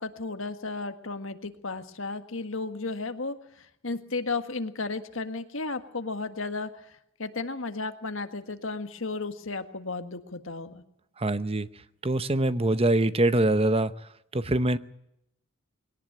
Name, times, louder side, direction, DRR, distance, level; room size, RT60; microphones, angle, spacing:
voice 1, 0.0-10.8, left 3 dB, 65° left, 9 dB, 1.7 m, -34 dB
voice 2, 11.2-11.7 12.0-13.9 14.3-14.8, right 2 dB, 25° right, 13 dB, 0.8 m, -24 dB
21.5 x 18.5 x 8.9 m, 0.79 s
head